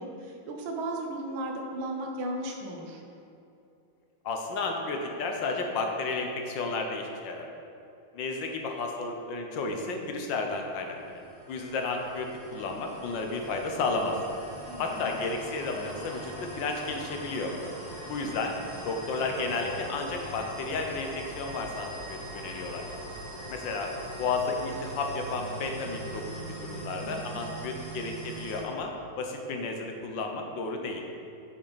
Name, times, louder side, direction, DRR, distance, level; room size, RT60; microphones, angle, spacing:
voice 1, 0.0-3.0 14.7-15.1 27.0-27.2, right 1 dB, 75° right, 1 dB, 1.8 m, -35 dB
voice 2, 4.2-7.5 8.1-11.2 11.5-14.2 14.8-17.5 18.1-18.5 18.8-22.8 23.5-23.9 24.2-31.0, left 3 dB, 70° left, 2 dB, 1.4 m, -32 dB
sound 1, 10.6-28.6, right 1 dB, 10° right, 1.7 m, -42 dB
7.7 x 6.9 x 4.0 m, 2.7 s
omnidirectional pair, 2.3 m